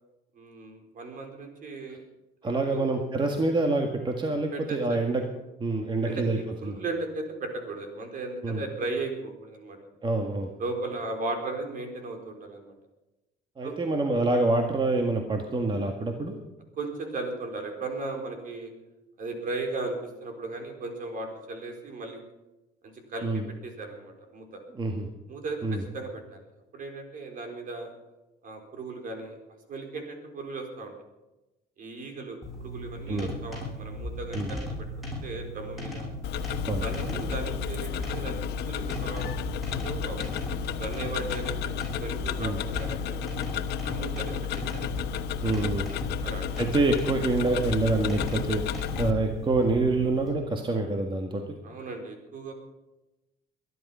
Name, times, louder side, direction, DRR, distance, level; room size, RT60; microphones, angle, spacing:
voice 1, 0.3-2.0 2.4-2.9 4.5-5.0 6.0-9.8 10.6-12.7 13.6-13.8 16.8-18.7 19.2-22.2 22.8-24.6 25.3-26.4 26.7-27.9 28.4-29.4 29.7-30.9 31.8-34.9 35.2-36.1 36.8-38.3 38.7-39.2 39.8-40.2 40.8-41.7 42.0-43.2 43.8-44.8 46.2-46.5 51.6-52.5, right 3 dB, 55° right, 3 dB, 4.1 m, -36 dB
voice 2, 2.4-5.2 5.6-6.4 6.6-6.8 8.4-8.6 10.0-10.5 13.6-16.4 23.2-23.5 24.7-25.1 25.6-25.8 33.1-33.3 34.3-34.5 36.7-36.8 42.4-42.6 45.4-45.9 46.3-51.6, right 2 dB, 30° right, 3 dB, 1.8 m, -26 dB
sound 1, 32.4-50.3, left 1 dB, ahead, 7.8 m, -37 dB
Tick-tock, 36.2-49.1, left 9 dB, 75° left, 1.1 m, -32 dB
22.0 x 11.0 x 5.6 m, 1.0 s
cardioid pair, 110°, 17 cm